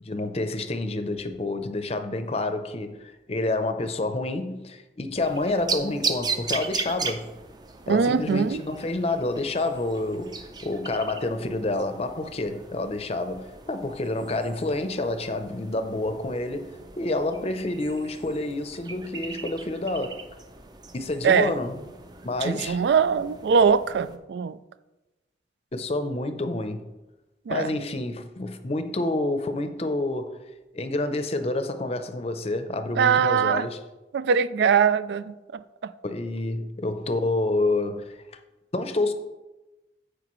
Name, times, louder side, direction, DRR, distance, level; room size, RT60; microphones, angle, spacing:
voice 1, 0.0-7.3 7.9-20.2 20.9-21.8 22.2-22.8 25.7-26.9 27.5-30.4 30.7-33.8 36.0-38.2 38.7-39.1, left 2 dB, 35° left, 0.6 m, -28 dB
sound 1, 5.2-24.2, right 4 dB, 25° right, 0.5 m, -38 dB
voice 2, 7.9-8.6 21.2-21.5 22.4-24.6 27.5-27.7 33.0-33.7 34.1-35.6, right 6 dB, 70° right, 0.3 m, -22 dB
14.5 x 4.9 x 3.1 m
head